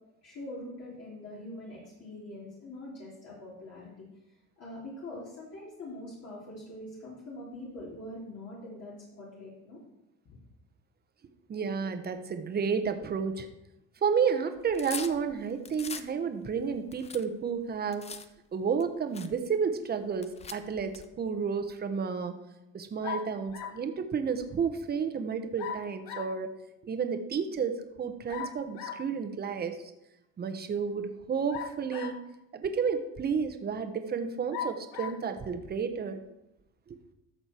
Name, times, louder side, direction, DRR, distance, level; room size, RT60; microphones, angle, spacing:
voice 1, 0.2-4.1 4.6-9.8, left 1 dB, 50° left, -6 dB, 3.2 m, -43 dB
voice 2, 11.5-13.5 14.0-18.1 18.5-22.3 22.7-26.6 26.8-29.8 30.4-32.3 32.5-36.2 36.9-37.0, right 6 dB, 30° right, 8 dB, 1.0 m, -31 dB
sound 1, 14.6-16.1 16.6-18.3 18.8-18.9 19.1-19.3 20.1-21.1, left 5 dB, 20° left, 0.5 m, -41 dB
sound 2, 23.0-23.9 25.6-26.4 28.3-29.1 31.5-32.4 33.1-33.2 34.5-35.2, left 7 dB, 90° left, 0.9 m, -39 dB
13.0 x 6.6 x 4.4 m, 0.89 s
cardioid pair, 120°, 33 cm